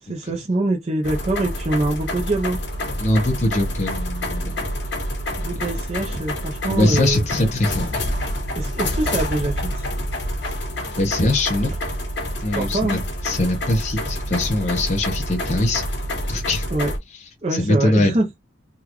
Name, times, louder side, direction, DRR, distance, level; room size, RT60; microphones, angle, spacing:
voice 1, 0.0-2.6 5.4-7.2 8.5-9.9 12.5-13.0 16.7-16.9 17.4-18.3, right 2 dB, 35° right, 0.6 m, -24 dB
sound 1, 1.0-17.0, left 1 dB, 60° left, 1.4 m, -27 dB
voice 2, 3.0-4.6 5.5-5.6 6.7-8.0 11.0-11.7 12.4-16.0 16.3-16.7 17.5-18.1, left 1 dB, 35° left, 0.8 m, -22 dB
3.7 x 2.3 x 3.0 m
head